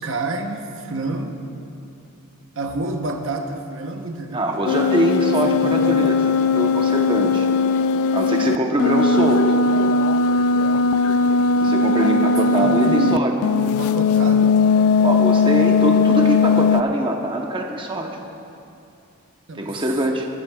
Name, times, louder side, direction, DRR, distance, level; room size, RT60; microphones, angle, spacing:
voice 1, 0.0-1.5 2.5-4.5 5.4-6.1 12.5-14.7 19.5-19.9, right 2 dB, 60° right, 4 dB, 0.8 m, -29 dB
voice 2, 4.3-6.2 6.5-7.5 8.1-9.6 11.6-13.3 15.0-18.2 19.6-20.3, right 1 dB, 25° right, 2 dB, 0.8 m, -23 dB
sound 1, 4.7-13.2 13.4-16.8, left 4 dB, 75° left, 0.3 m, -18 dB
20.5 x 13.0 x 2.3 m, 2.6 s
head